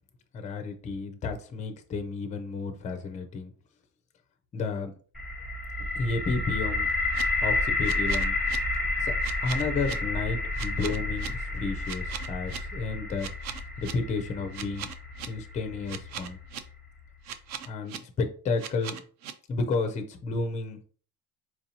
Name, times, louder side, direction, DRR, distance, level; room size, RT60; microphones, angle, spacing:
voice 1, 0.3-3.5 4.5-4.9 6.0-6.9 7.4-8.4 9.0-13.3 13.8-14.9 15.3-16.4 17.7-18.9 19.5-20.8, left 4 dB, 20° left, 6 dB, 0.4 m, -32 dB
sound 1, 5.1-17.0, left 2 dB, ahead, 0.9 m, -31 dB
Reverse Smacking, 6.9-7.2 7.8-8.6 9.2-9.9 10.6-11.3 11.8-12.6 13.2-13.9 14.5-15.3 15.9-16.6 17.2-18.0 18.6-19.3, right 9 dB, 50° right, 0.4 m, -38 dB
4.5 x 2.7 x 2.8 m, 0.42 s
cardioid pair, 155°, 36 cm